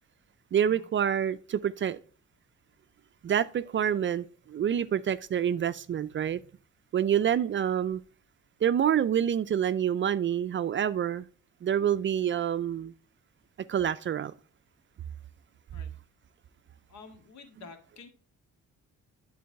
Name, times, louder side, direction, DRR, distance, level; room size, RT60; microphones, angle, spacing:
voice 1, 0.5-2.0 3.2-6.4 6.9-8.0 8.6-11.3 11.6-12.9 13.7-14.3, right 9 dB, 40° right, 0.4 m, -27 dB
voice 2, 16.9-18.1, left 4 dB, 65° left, 1.9 m, -50 dB
11.5 x 4.0 x 3.5 m
cardioid pair, 90°, 30 cm